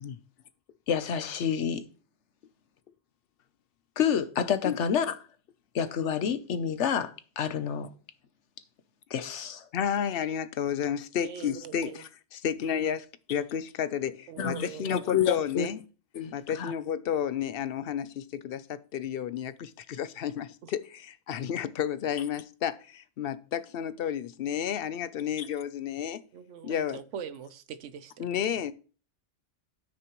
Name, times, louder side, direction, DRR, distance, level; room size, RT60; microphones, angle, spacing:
voice 1, 0.9-1.8 4.0-5.2 5.7-7.9 9.1-9.7 14.4-15.7 16.1-16.7, left 7 dB, 75° left, 1.1 m, -29 dB
voice 2, 9.7-15.8 16.3-26.2 26.6-27.0 28.2-28.7, left 9 dB, 60° left, 0.7 m, -32 dB
voice 3, 11.2-12.0 14.3-15.1 20.6-20.7 26.3-28.4, right 8 dB, 90° right, 1.1 m, -42 dB
13.0 x 6.2 x 3.1 m
omnidirectional pair, 1.2 m